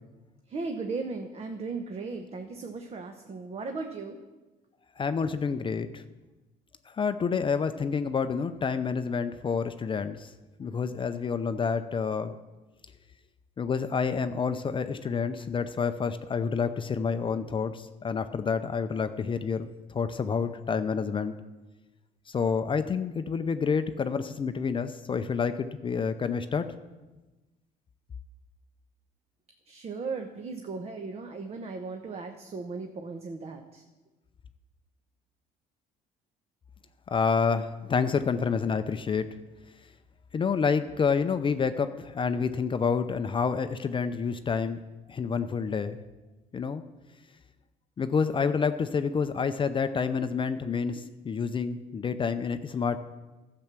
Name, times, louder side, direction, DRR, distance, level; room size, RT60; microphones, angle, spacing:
voice 1, 0.5-4.2 29.7-33.8, right 4 dB, 35° right, 5 dB, 1.0 m, -37 dB
voice 2, 5.0-6.0 6.9-10.3 10.6-12.4 13.6-21.3 22.3-26.6 37.1-39.3 40.3-44.8 45.1-46.0 46.5-46.8 48.0-53.0, left 5 dB, 30° left, 10 dB, 0.5 m, -28 dB
12.0 x 7.7 x 6.0 m, 1.2 s
cardioid pair, 110°, 17 cm